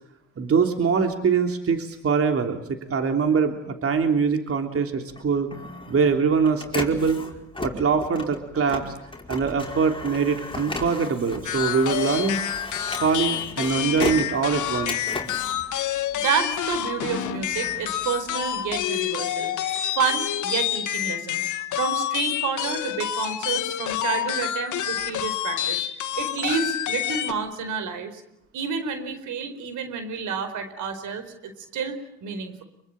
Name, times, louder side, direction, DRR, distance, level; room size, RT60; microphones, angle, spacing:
voice 1, 0.4-5.5 5.9-7.2 7.6-8.9 9.3-12.4 13.0-15.1, right 5 dB, 50° right, 5 dB, 3.3 m, -23 dB
Printer, 5.1-16.5 17.0-18.8, left 2 dB, 15° left, 5.0 m, -36 dB
sound 1, 11.4-27.3, left 11 dB, 75° left, 2.0 m, -28 dB
voice 2, 15.7-21.5 21.8-28.2 28.5-32.6, right 6 dB, 80° right, 9 dB, 4.6 m, -30 dB
25.0 x 24.0 x 8.9 m, 0.79 s
cardioid pair, 90°, 30 cm